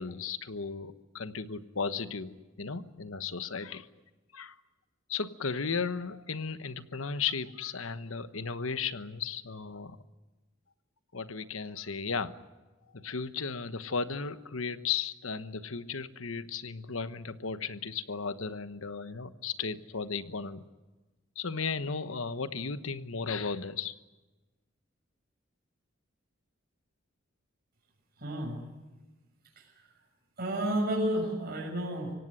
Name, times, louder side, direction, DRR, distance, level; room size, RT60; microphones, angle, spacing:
voice 1, 0.0-3.9 4.3-4.6 5.1-10.0 11.1-12.4 12.9-20.7 21.4-23.9, left 5 dB, 80° left, 12 dB, 1.2 m, -35 dB
voice 2, 28.2-28.6 29.5-29.8 30.4-32.1, right 1 dB, 50° right, 0 dB, 6.8 m, -31 dB
25.0 x 17.5 x 10.0 m, 1.2 s
head